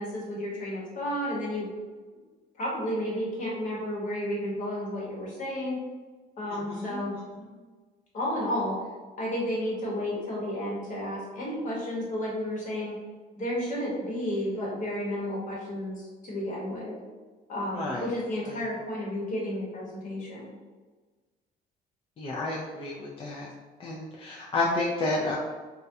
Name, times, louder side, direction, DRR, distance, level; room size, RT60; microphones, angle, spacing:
voice 1, 0.0-1.7 2.6-5.8 6.4-7.1 8.1-8.8 9.2-12.9 13.4-17.0 17.5-20.5, left 1 dB, 50° left, -4 dB, 1.0 m, -32 dB
voice 2, 6.5-7.2 17.7-18.1 18.5-18.6 22.2-23.5 23.8-25.4, left 2 dB, 35° left, -5 dB, 0.4 m, -31 dB
2.3 x 2.1 x 2.6 m, 1.4 s
cardioid pair, 110°, 17 cm